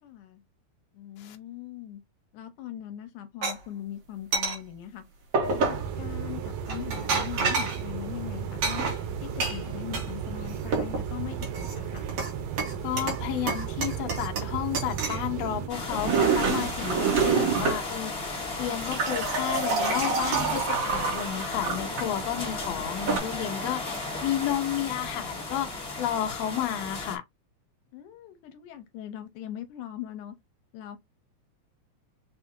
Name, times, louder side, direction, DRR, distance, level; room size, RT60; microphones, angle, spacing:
voice 1, 0.0-0.4 1.0-2.0 2.3-5.0 5.4-8.8 9.2-12.2 27.9-30.3 30.7-31.0, left 11 dB, 85° left, 2.2 m, -40 dB
sound 1, 3.4-3.5 4.3-4.6 5.3-5.9 6.7-7.8 8.6-10.1 10.4-11.0 11.4-12.3 12.6-13.2 13.5-14.5 14.7-15.2 15.8-17.8 18.6-22.1 22.8-23.2, right 5 dB, 65° right, 3.0 m, -27 dB
sound 2, 5.4-15.7, right 7 dB, 85° right, 2.6 m, -34 dB
voice 2, 12.8-27.2, left 11 dB, 70° left, 1.8 m, -32 dB
sound 3, 15.7-27.2, left 2 dB, 25° left, 1.8 m, -35 dB
6.4 x 2.7 x 2.7 m
omnidirectional pair, 3.6 m